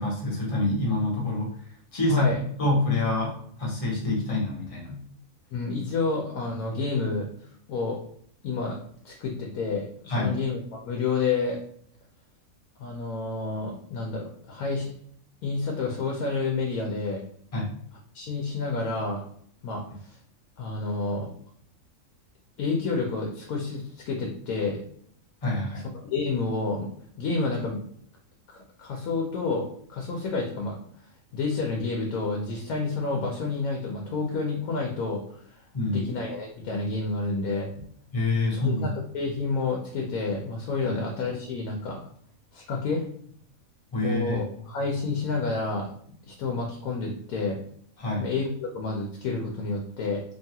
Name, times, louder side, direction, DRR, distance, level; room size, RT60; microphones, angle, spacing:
voice 1, 0.0-1.5 1.9-2.2 2.6-5.0 10.1-10.4 17.5-17.7 25.4-25.8 35.7-36.0 38.1-38.9 40.8-41.0 43.9-44.4 48.0-48.2, left 2 dB, 30° left, -3 dB, 0.8 m, -26 dB
voice 2, 5.5-7.3 7.7-8.0 8.4-8.8 9.0-11.6 12.8-14.9 15.4-17.2 18.1-19.2 19.6-20.2 20.6-21.3 22.6-24.8 26.0-26.9 27.2-27.8 28.5-30.8 31.3-35.2 35.5-37.7 38.5-42.0 42.5-43.0 44.0-45.9 46.2-47.6 48.2-50.2, left 3 dB, 85° left, 0 dB, 1.0 m, -29 dB
2.8 x 2.3 x 2.7 m, 0.63 s
omnidirectional pair, 1.5 m